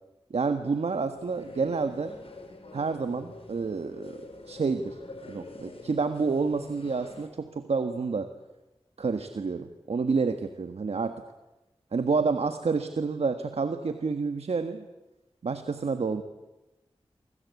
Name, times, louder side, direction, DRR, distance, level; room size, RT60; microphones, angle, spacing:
voice 1, 0.3-2.1 2.7-4.2 4.5-5.0 5.3-8.3 9.0-11.2 11.9-14.9 15.4-16.2, right 4 dB, 85° right, 8 dB, 1.4 m, -29 dB
sound 1, 1.1-7.3, left 2 dB, 65° left, 5.1 m, -46 dB
28.0 x 25.0 x 8.3 m, 1.0 s
wide cardioid pair, 80°, 10 cm